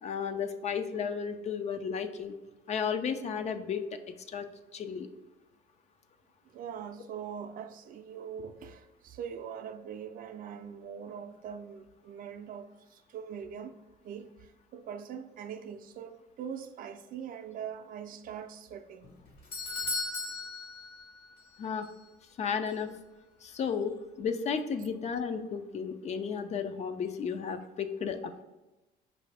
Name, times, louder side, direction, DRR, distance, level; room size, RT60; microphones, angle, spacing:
voice 1, 0.0-2.3 2.7-4.0 4.3-5.1 21.6-21.9 22.4-22.9 23.4-28.4, left 6 dB, 40° left, 0.4 m, -33 dB
voice 2, 6.5-19.2, right 7 dB, 55° right, 0.4 m, -42 dB
Doorbell, 19.0-21.6 21.8-21.9 22.7-22.8, left 3 dB, 60° left, 1.5 m, -37 dB
5.5 x 2.6 x 3.3 m
cardioid pair, 110°, 17 cm